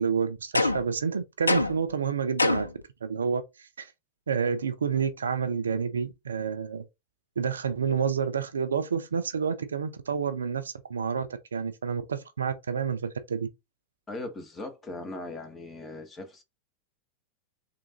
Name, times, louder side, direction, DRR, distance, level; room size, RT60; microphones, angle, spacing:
voice 1, 0.0-2.7 3.0-3.9 4.3-6.8 7.4-13.5, right 6 dB, 70° right, 0.4 m, -29 dB
sound 1, 0.5-1.0 1.5-1.9 2.4-2.8, left 2 dB, 80° left, 0.3 m, -25 dB
voice 2, 14.1-16.4, left 2 dB, 15° left, 0.9 m, -39 dB
3.6 x 2.7 x 2.7 m
figure-of-eight pair, 90°, 0 cm